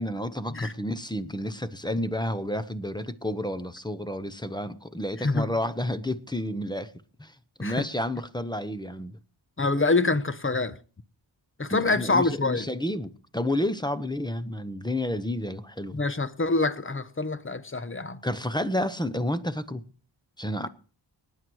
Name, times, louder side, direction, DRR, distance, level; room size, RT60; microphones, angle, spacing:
voice 1, 0.0-6.9 7.2-9.2 11.7-16.0 18.2-19.8 20.4-20.7, left 1 dB, 10° left, 1.0 m, -30 dB
voice 2, 5.2-5.5 7.6-7.9 9.6-10.8 11.6-12.6 15.9-18.2, left 3 dB, 25° left, 1.0 m, -26 dB
19.5 x 9.4 x 4.8 m
wide cardioid pair, 75°, 47 cm